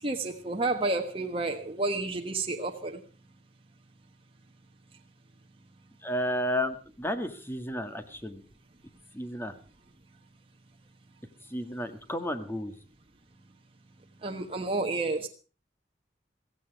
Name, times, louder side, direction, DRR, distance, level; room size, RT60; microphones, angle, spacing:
voice 1, 0.0-3.0 14.2-15.3, right 2 dB, 30° right, 3 dB, 1.4 m, -30 dB
voice 2, 6.0-8.4 9.1-9.6 11.5-12.7, equal, 15° left, 8 dB, 1.7 m, -32 dB
16.0 x 15.5 x 4.7 m, 0.35 s
head